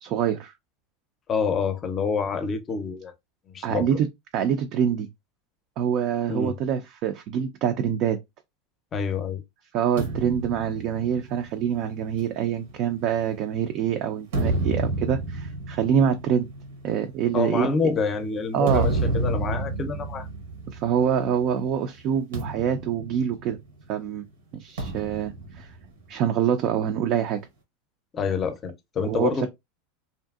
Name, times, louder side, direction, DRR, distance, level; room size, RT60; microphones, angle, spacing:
voice 1, 0.0-0.5 3.6-5.1 5.8-8.2 9.7-16.5 16.8-17.7 18.5-18.9 20.7-23.6 23.9-24.2 24.5-25.7 26.1-27.4 29.0-29.3, right 8 dB, 50° right, 0.4 m, -25 dB
voice 2, 1.3-3.1 3.5-3.9 6.3-6.5 8.9-9.4 17.3-20.3 28.1-29.5, left 5 dB, 30° left, 0.5 m, -27 dB
sound 1, 10.0-13.6 14.1-21.5 21.8-22.0 22.3-23.9 24.8-26.5, right 2 dB, 90° right, 1.0 m, -31 dB
2.6 x 2.4 x 2.3 m
supercardioid pair, 120°, 0 cm